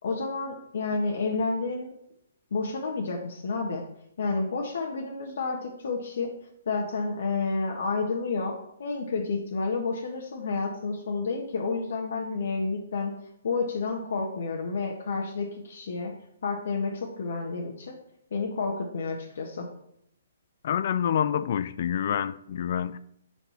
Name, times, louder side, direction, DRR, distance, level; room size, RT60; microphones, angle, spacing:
voice 1, 0.0-1.9 2.5-3.8 4.2-6.3 6.6-13.1 13.4-16.1 16.4-18.0 18.3-19.7, left 4 dB, 70° left, 1.5 m, -30 dB
voice 2, 20.6-23.0, left 9 dB, 50° left, 0.4 m, -27 dB
7.6 x 5.3 x 5.9 m
hypercardioid pair, 155°, 0 cm